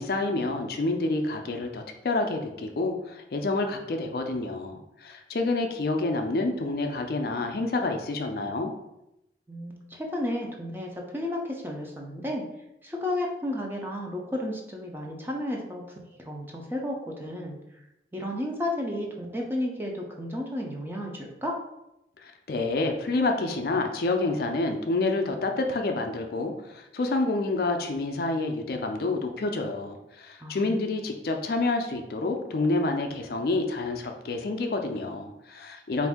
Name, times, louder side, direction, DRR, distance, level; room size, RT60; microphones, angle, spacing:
voice 1, 0.0-8.7 22.2-36.1, left 2 dB, 55° left, 4 dB, 0.4 m, -28 dB
voice 2, 9.5-12.4 12.8-17.6 18.1-21.6 30.4-30.9, left 1 dB, 10° right, 0 dB, 0.5 m, -33 dB
4.1 x 2.6 x 3.5 m, 0.87 s
head